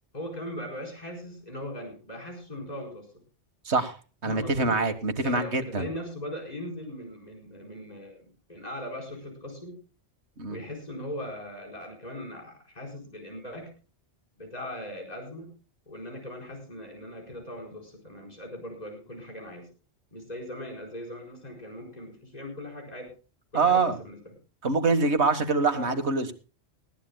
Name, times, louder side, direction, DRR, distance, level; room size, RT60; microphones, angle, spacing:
voice 1, 0.1-3.1 4.2-4.8 5.2-9.8 10.5-13.7 14.4-15.5 15.9-19.7 20.1-23.1 23.5-24.2 25.7-25.9, left 1 dB, 35° left, 1 dB, 4.7 m, -39 dB
voice 2, 3.7-4.0 4.2-5.9 10.4-10.6 23.5-24.0 24.6-26.3, right 3 dB, 80° right, 8 dB, 1.9 m, -24 dB
20.0 x 15.5 x 2.2 m, 0.34 s
omnidirectional pair, 1.1 m